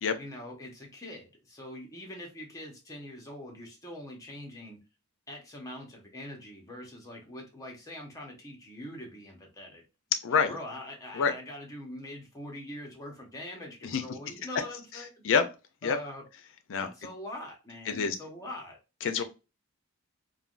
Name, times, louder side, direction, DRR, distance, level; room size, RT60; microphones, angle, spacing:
voice 1, 0.2-4.8 5.3-9.8 10.3-15.3 15.8-16.2 16.7-18.8, left 1 dB, 15° left, 0.8 m, -43 dB
voice 2, 10.2-10.5 11.1-11.3 13.8-14.0 15.2-15.4 15.8-16.0 16.7-16.9 17.9-18.2 19.0-19.2, left 6 dB, 60° left, 0.5 m, -26 dB
3.4 x 2.2 x 2.4 m
head